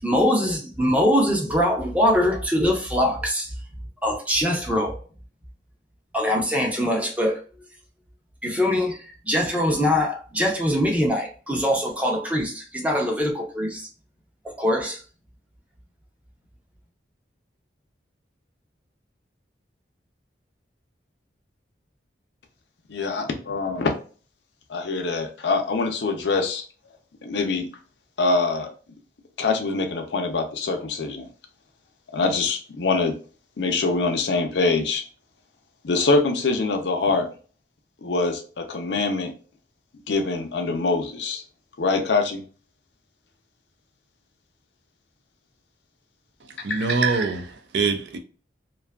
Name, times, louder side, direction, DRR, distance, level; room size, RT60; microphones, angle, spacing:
voice 1, 0.0-3.5 4.0-5.0 6.1-7.4 8.4-9.0 9.3-13.9 14.4-15.0, equal, 10° right, 0.5 m, -23 dB
voice 2, 22.9-23.9 24.7-26.6 27.2-27.7 28.2-28.7 29.4-31.3 32.1-33.1 33.6-35.0 35.8-37.3 38.0-39.3 40.1-41.4 41.8-42.4 46.7-46.9, left 3 dB, 80° left, 0.5 m, -24 dB
voice 3, 46.6-48.2, right 4 dB, 75° right, 0.4 m, -24 dB
2.5 x 2.3 x 2.3 m
head